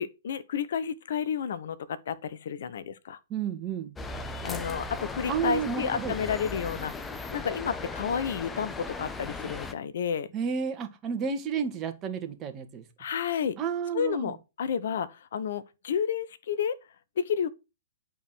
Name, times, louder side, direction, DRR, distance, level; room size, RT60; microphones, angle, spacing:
voice 1, 0.0-3.2 4.4-6.9 7.3-10.3 13.0-13.6 13.9-16.8 17.2-17.5, left 7 dB, 55° left, 0.8 m, -31 dB
voice 2, 3.3-3.9 5.3-6.2 10.3-12.8 13.6-14.3, right 7 dB, 25° right, 2.0 m, -31 dB
sound 1, 4.0-9.7, left 3 dB, 10° left, 1.0 m, -37 dB
11.0 x 4.7 x 6.1 m
figure-of-eight pair, 110°, 0 cm